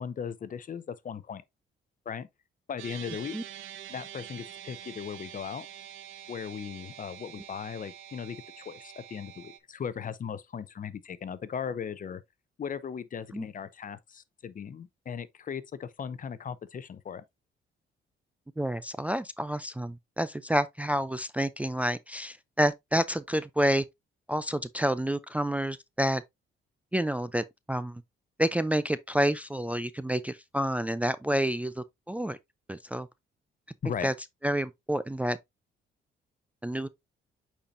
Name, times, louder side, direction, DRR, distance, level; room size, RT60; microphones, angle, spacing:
voice 1, 0.0-1.4 2.1-2.3 2.7-3.4 3.9-5.7 6.3-12.2 12.6-17.2 33.8-34.1, left 7 dB, 45° left, 0.7 m, -37 dB
sound 1, 2.8-9.6, right 11 dB, 80° right, 0.8 m, -46 dB
voice 2, 18.6-23.8 24.3-26.2 26.9-28.0 28.4-32.4 32.7-33.1 34.0-34.1 34.4-35.4 36.6-36.9, equal, 5° right, 0.4 m, -29 dB
8.5 x 4.4 x 2.6 m
cardioid pair, 90°, 20 cm